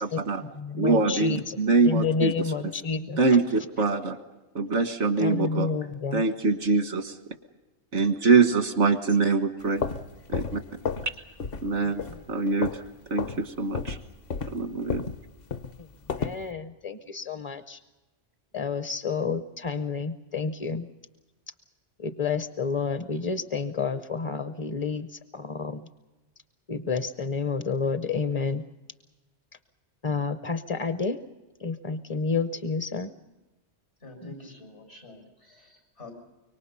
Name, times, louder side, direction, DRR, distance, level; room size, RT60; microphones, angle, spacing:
voice 1, 0.0-0.4 0.8-2.7 3.2-4.2 4.6-5.7 6.1-7.2 7.9-9.9 10.3-10.6 11.0-11.1 11.6-12.8 13.1-14.0 14.5-15.0, right 4 dB, 90° right, 8 dB, 1.8 m, -24 dB
voice 2, 0.6-1.6 1.9-3.2 5.2-6.2 16.2-17.8 18.5-20.9 22.0-25.1 25.3-25.8 26.7-28.6 30.0-31.2 31.6-33.1 34.2-34.5, left 5 dB, 30° left, 10 dB, 0.7 m, -29 dB
sound 1, 9.6-11.1 11.4-11.7 12.0-12.9 13.2-13.4 13.7-16.4, left 5 dB, 55° left, 1.1 m, -32 dB
voice 3, 34.0-36.1, left 2 dB, 85° left, 3 dB, 5.8 m, -47 dB
25.0 x 23.5 x 5.6 m, 1.1 s
omnidirectional pair, 1.2 m